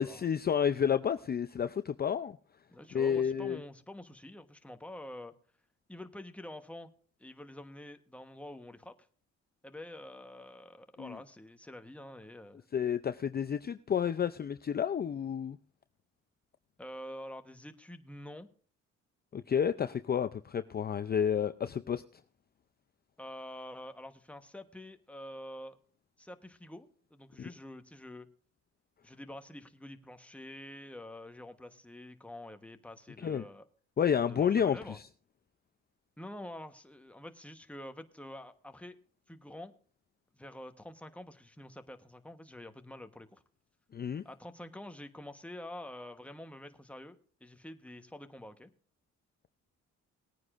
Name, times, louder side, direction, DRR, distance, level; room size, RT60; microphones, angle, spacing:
voice 1, 0.0-2.4 2.9-3.6 11.0-11.2 12.7-15.6 19.3-22.0 27.4-27.5 33.2-33.4 34.0-35.0 43.9-44.2, left 8 dB, 30° left, 11 dB, 0.5 m, -30 dB
voice 2, 2.7-5.3 5.9-6.9 7.2-8.9 9.6-12.6 16.8-18.5 23.2-25.8 26.2-28.3 29.0-33.6 34.3-35.0 36.2-39.0 39.3-39.7 40.3-43.4 44.2-48.7, left 1 dB, 5° left, 7 dB, 1.1 m, -47 dB
19.5 x 9.5 x 2.5 m, 0.44 s
cardioid pair, 90°, 30 cm